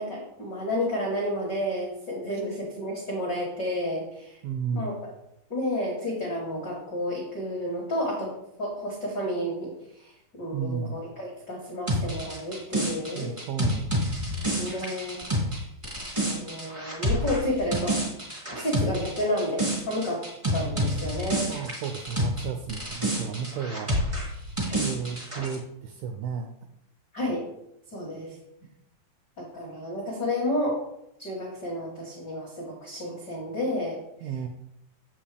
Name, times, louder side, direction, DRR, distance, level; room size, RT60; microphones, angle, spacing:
voice 1, 0.0-4.4 4.7-5.1 5.5-8.3 8.6-10.1 10.4-13.3 14.5-15.2 16.2-18.0 18.5-20.2 20.5-21.5 24.6-24.8 27.1-27.5 27.9-28.3 29.4-30.8 31.2-34.0, left 1 dB, 70° left, -4 dB, 0.9 m, -31 dB
voice 2, 4.4-5.0 10.5-11.0 13.2-13.9 14.7-14.8 21.5-23.9 24.8-26.5 34.2-34.5, right 6 dB, 85° right, 6 dB, 2.1 m, -33 dB
sound 1, 11.9-22.4 22.7-25.5, equal, 45° right, 0.3 m, -29 dB
7.5 x 7.3 x 3.4 m, 0.81 s
omnidirectional pair, 4.7 m